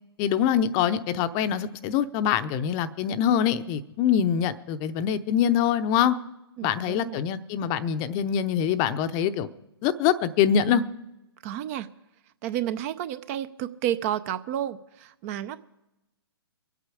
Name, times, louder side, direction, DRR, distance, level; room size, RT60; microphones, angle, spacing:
voice 1, 0.2-6.2 6.6-9.5 9.8-10.8, left 9 dB, 30° left, 12 dB, 0.7 m, -24 dB
voice 2, 6.6-7.2 11.4-11.9 12.4-15.6, right 11 dB, 35° right, 14 dB, 0.6 m, -31 dB
23.5 x 8.5 x 4.9 m, 0.93 s
hypercardioid pair, 125°, 14 cm